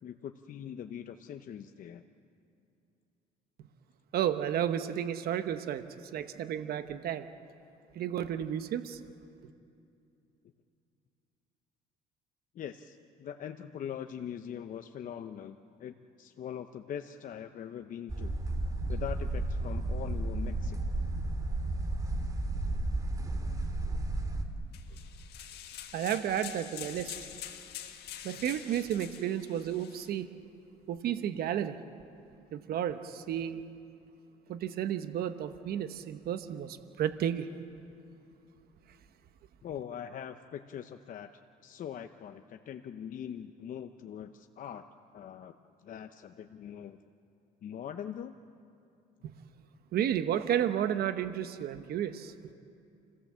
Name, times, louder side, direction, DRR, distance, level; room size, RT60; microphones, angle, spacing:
voice 1, 0.0-2.0 12.5-18.3 18.9-20.8 39.6-41.3 41.6-44.8 45.1-45.5 45.8-47.0 47.6-48.4, left 9 dB, 50° left, 7 dB, 0.8 m, -42 dB
voice 2, 4.1-5.9 6.1-7.3 7.9-9.0 25.9-27.2 28.2-30.3 30.9-31.8 32.5-33.6 34.5-37.5 49.9-52.3, right 10 dB, 65° right, 10 dB, 1.1 m, -32 dB
sound 1, 18.1-24.4, right 2 dB, 20° right, 2.3 m, -33 dB
sound 2, 24.7-30.1, left 11 dB, 75° left, 1.6 m, -45 dB
28.5 x 16.5 x 7.5 m, 2.7 s
cardioid pair, 110°, 17 cm